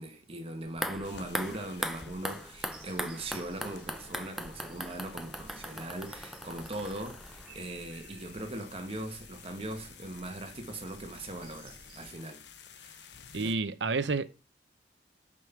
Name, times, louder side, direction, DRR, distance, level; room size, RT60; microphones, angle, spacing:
voice 1, 0.0-12.4 12.7-13.5, right 1 dB, 30° right, 1.5 m, -40 dB
sound 1, 0.7-7.8 8.1-8.2, equal, ahead, 0.6 m, -39 dB
sound 2, 1.0-13.6, left 8 dB, 65° left, 0.8 m, -53 dB
sound 3, 2.7-12.1, right 2 dB, 55° right, 1.9 m, -54 dB
voice 2, 13.3-14.5, right 3 dB, 75° right, 0.7 m, -30 dB
6.3 x 5.3 x 5.8 m
head